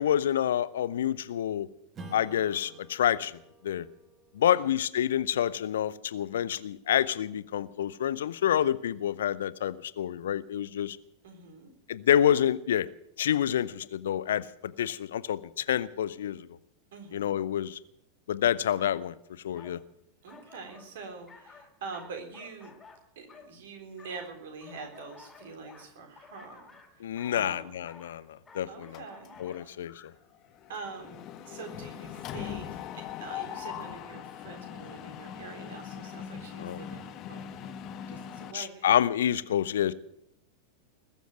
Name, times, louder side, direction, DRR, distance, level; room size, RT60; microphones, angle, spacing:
voice 1, 0.0-1.7 2.1-3.4 3.6-3.9 4.3-11.0 11.9-12.9 13.2-16.6 17.1-17.8 18.3-19.2 19.4-19.8 27.0-29.0 29.4-29.9 36.6-36.8 38.5-39.9, left 10 dB, 60° left, 17 dB, 0.6 m, -28 dB
Strum, 1.9-6.9, right 2 dB, 25° right, 1.7 m, -52 dB
voice 2, 11.2-11.7 16.9-17.4 20.2-22.7 23.2-26.7 26.9-27.7 28.7-29.7 30.7-37.7 38.1-38.9, right 4 dB, 55° right, 5 dB, 3.7 m, -45 dB
sound 1, 18.8-19.1 19.5-19.8 20.3-20.9 21.3-23.5 24.0-29.6, left 5 dB, 15° left, 2.4 m, -53 dB
Mechanisms, 28.9-29.5 29.9-30.1 30.3-38.5, left 9 dB, 35° left, 1.2 m, -41 dB
20.5 x 7.3 x 9.2 m, 0.78 s
figure-of-eight pair, 90°, 0 cm